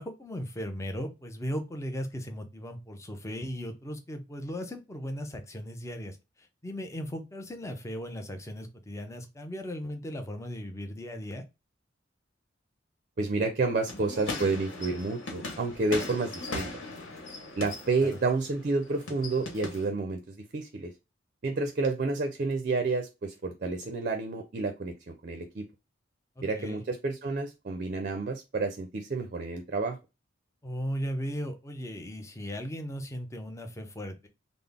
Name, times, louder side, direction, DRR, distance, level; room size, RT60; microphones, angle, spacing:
voice 1, 0.0-11.4 18.0-18.1 26.4-26.8 30.6-34.3, equal, 15° left, 5 dB, 0.5 m, -37 dB
voice 2, 13.2-16.7 17.6-20.9 21.4-25.7 26.4-30.0, right 3 dB, 45° right, 6 dB, 0.4 m, -30 dB
sound 1, 13.9-19.9, left 2 dB, 70° left, 1.2 m, -39 dB
3.8 x 2.0 x 3.4 m, 0.26 s
head